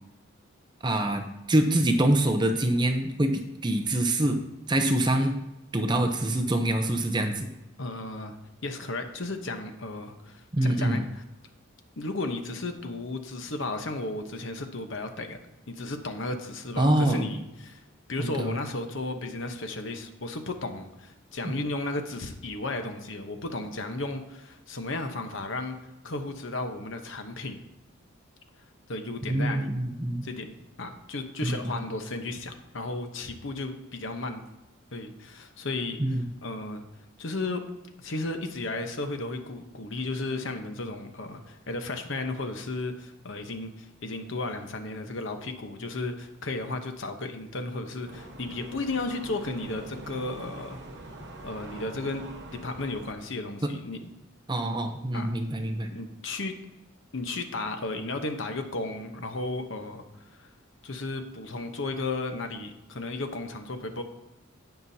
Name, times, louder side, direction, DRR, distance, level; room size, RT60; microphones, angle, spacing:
voice 1, 0.8-4.4 4.7-5.4 5.7-7.5 10.5-11.0 16.8-17.2 18.2-18.6 21.4-21.5 29.3-30.3 31.4-31.8 36.0-36.3 53.6-53.7 54.5-55.9, right 1 dB, 20° right, 5 dB, 0.6 m, -25 dB
voice 2, 7.8-8.4 8.6-11.2 12.0-15.4 15.7-17.8 18.1-25.8 26.0-27.6 28.9-29.7 30.2-34.4 34.9-36.0 36.4-36.8 37.2-37.6 38.0-50.8 51.4-52.2 52.6-54.1 55.1-55.4 55.9-56.6 57.1-60.5 60.8-64.0, left 2 dB, 65° left, 6 dB, 1.0 m, -34 dB
sound 1, 48.1-53.1, right 1 dB, 50° right, 1.0 m, -43 dB
17.0 x 6.0 x 2.8 m, 0.93 s
head